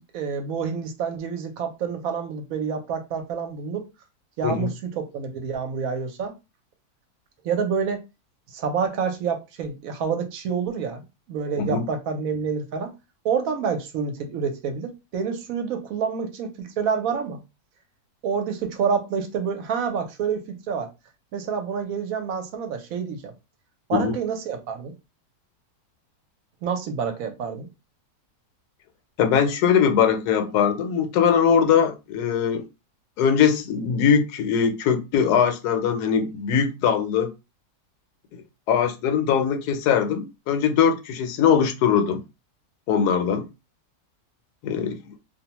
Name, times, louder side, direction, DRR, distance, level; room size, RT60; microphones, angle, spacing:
voice 1, 0.1-3.9 4.4-6.3 7.4-8.0 8.5-11.0 11.3-12.9 13.2-17.4 18.2-20.9 21.3-23.3 23.9-24.9 26.6-27.7, right 6 dB, 65° right, 1.0 m, -28 dB
voice 2, 29.2-32.6 33.2-37.3 38.7-42.2 42.9-43.5 44.6-45.1, left 7 dB, 80° left, 1.1 m, -21 dB
2.6 x 2.1 x 2.9 m
omnidirectional pair, 1.7 m